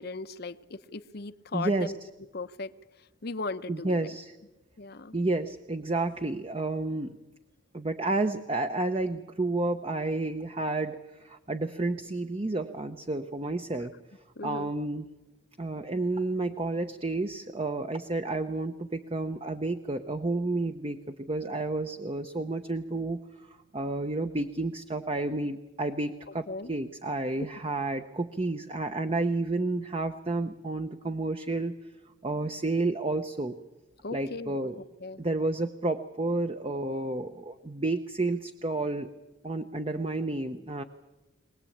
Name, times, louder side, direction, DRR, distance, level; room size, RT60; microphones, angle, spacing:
voice 1, 0.0-2.0 2.3-2.7 3.2-4.1 4.8-5.2 14.4-14.7 26.5-26.7 27.4-27.5 34.0-35.2, left 3 dB, 50° left, 12 dB, 0.8 m, -37 dB
voice 2, 1.5-1.9 3.7-4.3 5.1-7.2 7.7-13.9 14.4-15.1 15.6-23.5 23.7-31.7 32.2-33.6 34.1-34.8 35.2-39.1 39.4-40.8, right 2 dB, 30° right, 7 dB, 0.8 m, -31 dB
23.5 x 18.5 x 8.6 m, 1.0 s
head